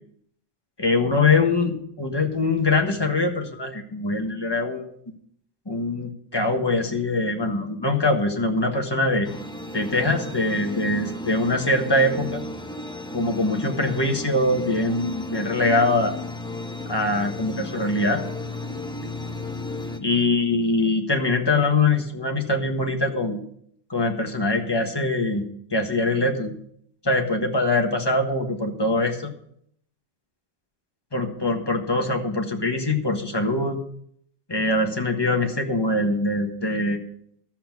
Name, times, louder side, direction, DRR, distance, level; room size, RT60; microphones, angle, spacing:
voice 1, 0.8-4.9 5.7-9.3 9.7-12.4 13.1-16.1 16.9-18.2 20.0-23.4 23.9-26.5 27.0-29.3 31.1-33.8 34.5-37.0, left 2 dB, 25° left, 3 dB, 1.4 m, -23 dB
sound 1, 9.2-20.0, left 2 dB, 5° left, 0.7 m, -34 dB
13.0 x 7.5 x 6.1 m, 0.68 s
omnidirectional pair, 1.1 m